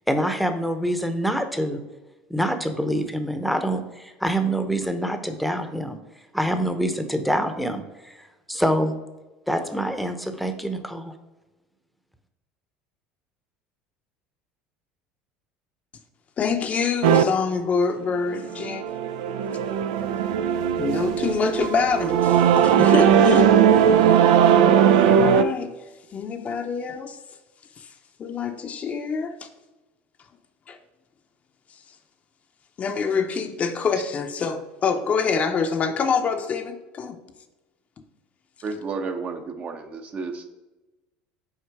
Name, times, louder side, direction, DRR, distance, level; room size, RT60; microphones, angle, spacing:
voice 1, 0.1-1.8 2.3-6.0 6.3-8.9 9.5-11.1, equal, ahead, 7 dB, 0.8 m, -26 dB
voice 2, 16.4-19.0 20.8-23.5 23.8-24.4 24.9-25.7 26.1-27.2 28.2-29.4 30.7-30.8 32.8-37.2, left 5 dB, 40° left, 6 dB, 0.7 m, -26 dB
sound 1, 17.0-17.2 18.4-25.4, right 8 dB, 85° right, 0.4 m, -18 dB
voice 3, 38.6-40.5, right 4 dB, 40° right, 6 dB, 0.8 m, -32 dB
6.4 x 4.4 x 4.7 m, 1.1 s
supercardioid pair, 100°, 4 cm